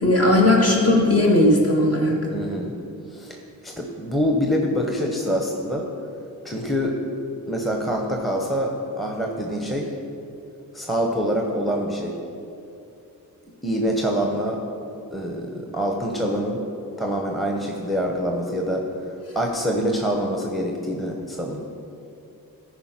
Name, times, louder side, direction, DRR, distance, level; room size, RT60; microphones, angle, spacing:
voice 1, 0.0-2.2, left 1 dB, 45° left, -1 dB, 2.0 m, -17 dB
voice 2, 2.3-2.7 3.1-3.4 3.6-5.9 6.4-7.0 7.5-9.9 10.7-12.2 13.6-14.6 15.1-16.6 17.0-18.9 19.3-21.6, equal, ahead, 0 dB, 1.0 m, -25 dB
14.0 x 4.9 x 5.9 m, 2.6 s
cardioid pair, 100°, 35 cm